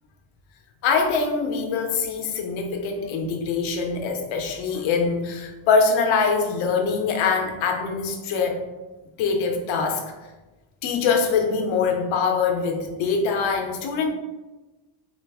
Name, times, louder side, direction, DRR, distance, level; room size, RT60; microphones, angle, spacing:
voice 1, 0.8-8.6 9.2-10.0 10.8-14.1, left 5 dB, 90° left, 2 dB, 0.8 m, -23 dB
3.8 x 2.5 x 3.4 m, 1.1 s
cardioid pair, 155°, 45 cm